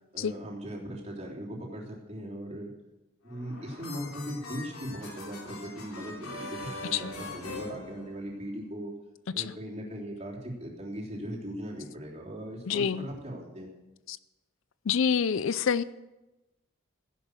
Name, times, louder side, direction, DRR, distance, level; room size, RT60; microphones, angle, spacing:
voice 1, 0.1-2.7 3.2-8.9 9.3-13.7, equal, 30° right, -3 dB, 3.4 m, -39 dB
sound 1, 3.3-8.6, left 2 dB, 85° left, 3.1 m, -42 dB
voice 2, 12.7-13.1 14.1-14.2 14.9-15.8, left 7 dB, 65° left, 16 dB, 0.4 m, -27 dB
15.0 x 11.0 x 6.6 m, 1.0 s
head